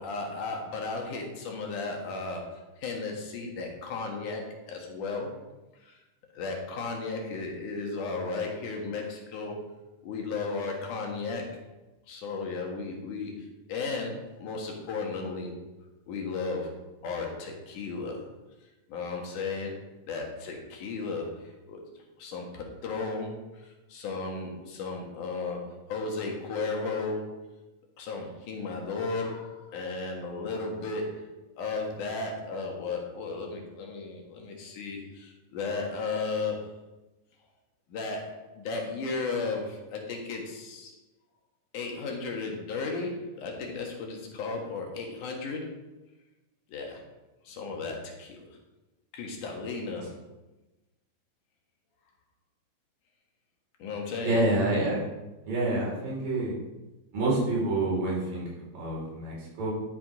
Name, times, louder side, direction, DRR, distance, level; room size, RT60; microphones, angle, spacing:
voice 1, 0.0-5.3 5.8-6.0 6.3-9.6 10.0-11.6 12.1-13.3 13.7-15.5 16.1-16.7 17.0-18.2 18.9-19.7 20.1-21.8 22.2-25.6 25.9-27.3 28.0-31.3 31.6-36.7 37.9-40.9 41.7-45.7 46.7-47.0 47.4-48.5 49.1-50.2 53.8-54.4, left 4 dB, 70° left, 1 dB, 3.0 m, -34 dB
voice 2, 54.2-55.0 55.4-56.5 57.1-59.7, right 2 dB, 85° right, -5 dB, 5.8 m, -28 dB
12.0 x 7.0 x 5.0 m, 1.1 s
omnidirectional pair, 3.9 m